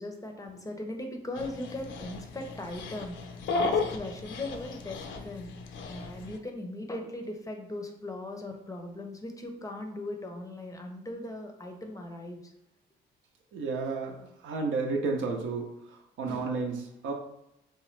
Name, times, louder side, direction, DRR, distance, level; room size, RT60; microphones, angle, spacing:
voice 1, 0.0-5.5 5.9-12.5 13.6-13.7 16.2-16.5, left 1 dB, 15° left, 3 dB, 0.5 m, -39 dB
Dog, 1.4-6.4, left 4 dB, 70° left, 0.5 m, -34 dB
voice 2, 13.5-17.1, right 4 dB, 80° right, 2 dB, 0.6 m, -32 dB
3.0 x 2.2 x 3.1 m, 0.83 s
cardioid pair, 90°, 20 cm